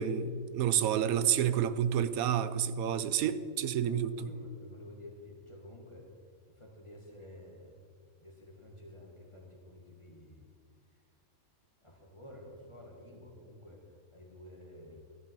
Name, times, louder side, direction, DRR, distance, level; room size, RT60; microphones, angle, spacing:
voice 1, 0.0-4.3, right 9 dB, 80° right, 1.1 m, -29 dB
voice 2, 0.9-1.6 3.8-6.1 6.5-7.8 8.2-10.5 10.9-11.0 11.8-15.0, left 1 dB, 20° left, 2.1 m, -51 dB
14.0 x 11.0 x 4.8 m
omnidirectional pair, 1.5 m